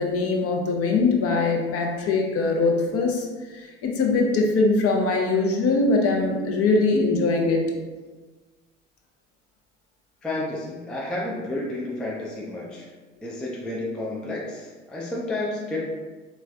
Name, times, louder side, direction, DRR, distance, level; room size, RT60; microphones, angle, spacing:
voice 1, 0.0-7.7, left 3 dB, 40° left, 1 dB, 0.7 m, -22 dB
voice 2, 10.2-12.9 13.2-15.9, left 2 dB, ahead, -3 dB, 0.4 m, -31 dB
3.5 x 3.1 x 2.5 m, 1.3 s
figure-of-eight pair, 65°, 37 cm